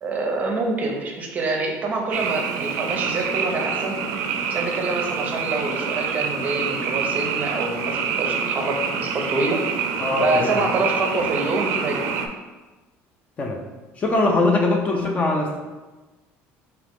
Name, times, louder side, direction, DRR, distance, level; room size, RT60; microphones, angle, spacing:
voice 1, 0.0-4.0 4.5-9.6 10.2-12.0, right 2 dB, 30° right, 1 dB, 0.6 m, -26 dB
Frog, 2.1-12.3, right 6 dB, 75° right, 0.4 m, -26 dB
voice 2, 10.0-10.6 13.4-13.6 14.0-15.6, left 2 dB, 25° left, 1 dB, 0.5 m, -21 dB
3.7 x 2.9 x 3.5 m, 1.2 s
cardioid pair, 150°, 5 cm